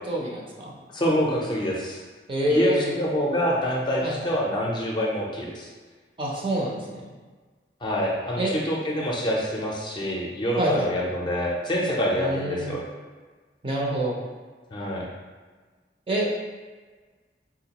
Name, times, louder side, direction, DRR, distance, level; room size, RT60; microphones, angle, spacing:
voice 1, 0.1-0.7 2.3-2.9 4.0-4.1 6.2-7.0 8.4-8.5 10.6-10.9 12.2-12.7 13.6-14.1 16.1-16.3, right 1 dB, 30° right, -3 dB, 0.5 m, -26 dB
voice 2, 0.9-2.0 2.5-5.7 7.8-12.8 14.7-15.1, equal, 25° left, -3 dB, 0.5 m, -26 dB
3.7 x 2.3 x 2.8 m, 1.4 s
head